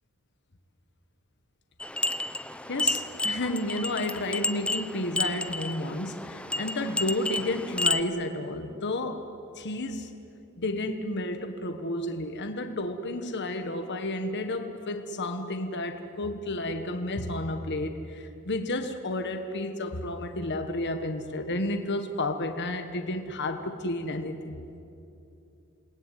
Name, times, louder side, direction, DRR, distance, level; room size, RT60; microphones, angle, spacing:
sound 1, 1.8-8.0, left 2 dB, 5° left, 0.8 m, -31 dB
voice 1, 2.7-9.2 9.5-10.1 10.6-24.6, left 1 dB, 55° left, 6 dB, 1.5 m, -31 dB
28.5 x 20.5 x 9.3 m, 2.8 s
head